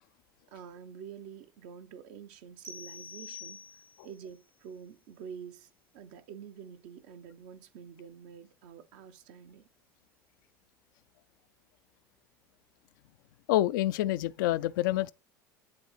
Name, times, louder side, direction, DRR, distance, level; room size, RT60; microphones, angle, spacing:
voice 1, 0.5-3.7 4.0-9.7, right 7 dB, 65° right, 0.8 m, -47 dB
sound 1, 2.6-4.2, left 4 dB, 80° right, 1.6 m, -46 dB
voice 2, 13.5-15.1, left 14 dB, 70° left, 0.4 m, -27 dB
10.5 x 3.7 x 3.1 m
hypercardioid pair, 70°, 11 cm